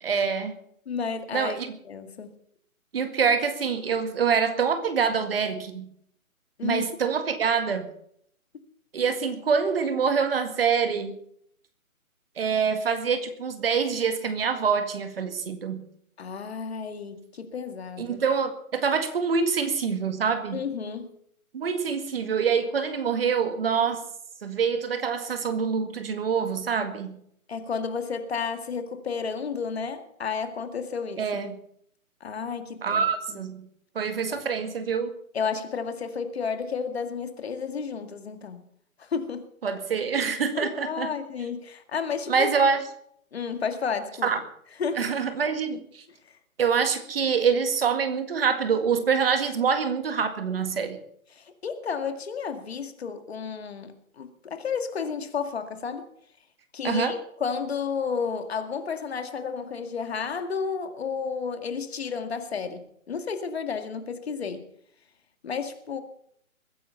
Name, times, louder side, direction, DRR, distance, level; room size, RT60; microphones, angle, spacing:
voice 1, 0.0-0.6 1.3-1.8 2.9-5.9 6.6-7.9 8.9-11.2 12.4-15.9 18.0-20.6 21.5-24.0 24.4-27.2 31.2-31.6 32.8-33.7 34.0-35.1 39.6-41.1 42.3-42.8 44.2-44.4 45.0-46.0 46.6-51.0 56.8-57.1, right 6 dB, 40° right, 9 dB, 2.0 m, -25 dB
voice 2, 0.9-1.6 1.9-2.4 6.6-6.9 16.2-18.2 20.5-21.1 27.5-31.2 32.2-33.4 34.3-34.4 35.3-38.6 39.0-39.5 40.5-42.5 43.3-44.3 44.8-45.1 51.3-56.1 56.7-64.7 65.4-66.0, left 6 dB, 45° left, 8 dB, 2.1 m, -32 dB
22.0 x 10.0 x 5.7 m, 0.67 s
hypercardioid pair, 160°, 43 cm